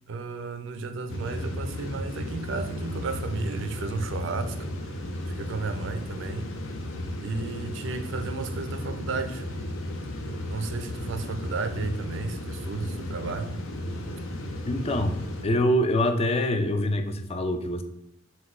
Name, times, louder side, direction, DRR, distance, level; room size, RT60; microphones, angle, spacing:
voice 1, 0.1-4.6 4.8-4.9 5.3-6.5 7.2-9.4 10.4-13.6, right 3 dB, 65° right, 0.4 m, -33 dB
Tunnel Falls, 1.1-15.4, left 1 dB, 75° left, 0.7 m, -34 dB
voice 2, 14.6-17.8, left 1 dB, 30° left, 0.4 m, -25 dB
4.3 x 2.3 x 4.2 m
head